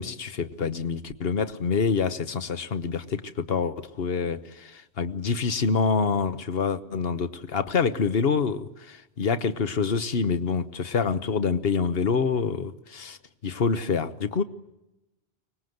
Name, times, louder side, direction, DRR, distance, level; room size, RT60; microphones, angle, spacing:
voice 1, 0.0-13.2 13.4-14.4, left 5 dB, 65° left, 12 dB, 1.3 m, -26 dB
24.0 x 20.0 x 7.9 m, 0.94 s
omnidirectional pair, 1.1 m